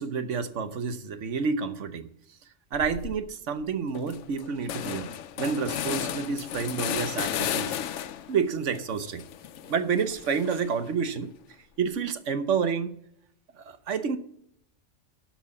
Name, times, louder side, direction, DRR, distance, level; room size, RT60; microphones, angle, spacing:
voice 1, 0.0-2.1 2.7-5.1 5.4-7.8 8.3-9.2 9.7-11.3 11.8-12.9 13.6-14.2, right 6 dB, 65° right, 10 dB, 1.2 m, -29 dB
sound 1, 2.7-3.2 3.6-3.7 3.9-8.4 8.7-10.9, left 10 dB, 70° left, 0.9 m, -34 dB
13.0 x 4.9 x 7.0 m, 0.70 s
omnidirectional pair, 1.4 m